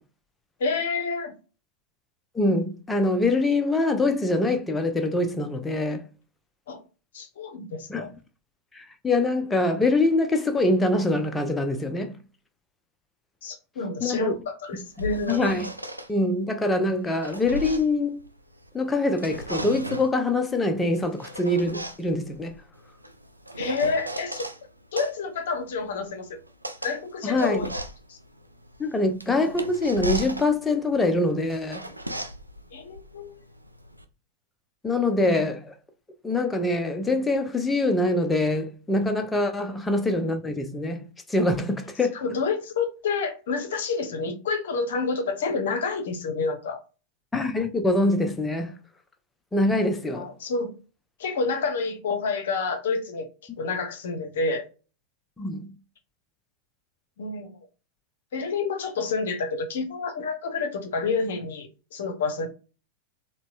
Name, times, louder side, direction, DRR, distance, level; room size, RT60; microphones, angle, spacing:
voice 1, 0.6-1.3 6.7-6.8 7.1-8.1 13.4-15.4 23.6-24.5 24.9-26.4 26.8-27.7 28.1-28.2 32.7-33.4 39.6-39.7 42.1-46.8 50.1-50.7 51.2-53.3 53.6-54.7 57.2-57.6 58.3-62.5, left 4 dB, 60° left, 0.7 m, -29 dB
voice 2, 2.3-6.0 7.9-8.1 8.7-12.2 14.0-14.3 15.3-15.6 16.1-18.2 18.7-22.5 27.2-27.6 28.8-31.9 34.8-35.7 36.2-42.2 47.3-48.8 49.5-50.3 55.4-55.8, left 2 dB, 10° left, 0.6 m, -24 dB
sound 1, 14.7-16.1 16.9-18.7 19.0-20.2 20.9-24.6 25.0-34.0, right 1 dB, 85° right, 0.4 m, -36 dB
4.1 x 2.1 x 2.5 m
figure-of-eight pair, 90°, 0 cm